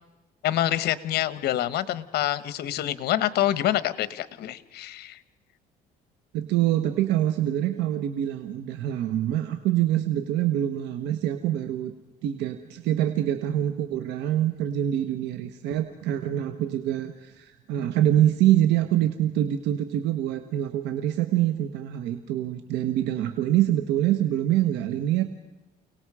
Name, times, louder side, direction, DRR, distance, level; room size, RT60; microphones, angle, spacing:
voice 1, 0.4-5.2, left 13 dB, 70° left, 15 dB, 1.2 m, -26 dB
voice 2, 6.3-11.9 12.2-25.2, right 12 dB, 90° right, 8 dB, 1.3 m, -25 dB
29.5 x 19.0 x 4.9 m, 1.0 s
cardioid pair, 110°, 17 cm